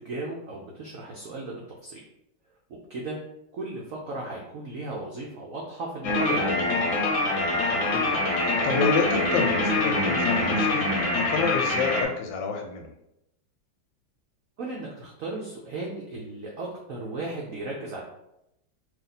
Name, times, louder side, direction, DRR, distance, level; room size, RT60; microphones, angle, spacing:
voice 1, 0.0-2.0 2.9-3.2 3.5-6.6 14.6-18.0, right 2 dB, 75° right, -2 dB, 0.7 m, -35 dB
sound 1, 6.0-12.0, left 2 dB, 55° left, 0.9 m, -24 dB
voice 2, 7.3-12.9, left 5 dB, 80° left, 4 dB, 1.3 m, -29 dB
3.1 x 2.8 x 4.0 m, 0.83 s
omnidirectional pair, 2.2 m